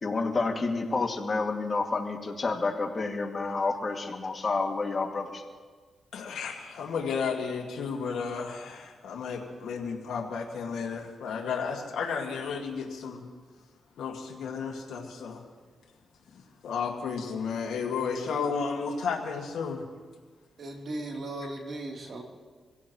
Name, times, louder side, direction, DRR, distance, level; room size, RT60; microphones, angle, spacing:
voice 1, 0.0-5.4, left 3 dB, 45° left, 2 dB, 2.3 m, -29 dB
voice 2, 6.1-13.3 14.0-15.4 16.3-19.8, left 5 dB, 90° left, -1 dB, 1.9 m, -33 dB
voice 3, 20.6-22.2, right 2 dB, 60° right, 0 dB, 3.1 m, -37 dB
25.5 x 16.5 x 3.1 m, 1.5 s
cardioid pair, 70°, 0 cm